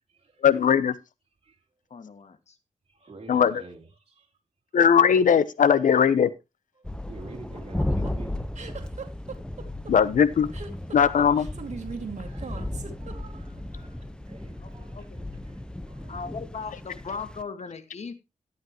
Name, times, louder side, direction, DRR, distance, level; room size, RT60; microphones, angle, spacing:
voice 1, 0.4-0.9 3.3-3.6 4.7-6.3 9.9-10.5 10.9-11.5, left 7 dB, 80° left, 0.9 m, -19 dB
voice 2, 1.9-2.6 14.6-15.3 16.1-18.1, left 5 dB, 55° left, 1.8 m, -38 dB
voice 3, 2.9-4.3 6.8-8.5 10.9-11.5 12.2-16.2, right 3 dB, 45° right, 3.5 m, -49 dB
sound 1, 6.8-17.4, left 1 dB, 5° left, 0.7 m, -35 dB
sound 2, 7.3-13.6, right 5 dB, 60° right, 2.2 m, -39 dB
12.5 x 10.5 x 3.0 m
cardioid pair, 80°, 13 cm